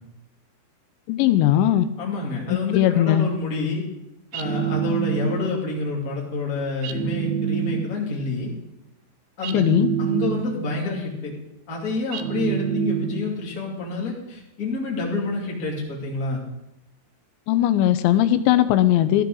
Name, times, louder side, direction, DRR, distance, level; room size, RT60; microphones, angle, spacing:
voice 1, 1.1-1.9 2.5-3.3 9.5-9.9 17.5-19.2, left 12 dB, 90° left, 11 dB, 3.0 m, -19 dB
voice 2, 2.0-3.8 4.3-8.5 9.4-9.6 10.0-11.3 11.7-16.4, left 3 dB, 25° left, -2 dB, 2.2 m, -28 dB
sound 1, 4.3-5.7 6.8-8.2 9.4-10.8 12.1-13.5, right 9 dB, 90° right, 3.0 m, -27 dB
14.0 x 13.0 x 3.9 m, 0.89 s
omnidirectional pair, 5.1 m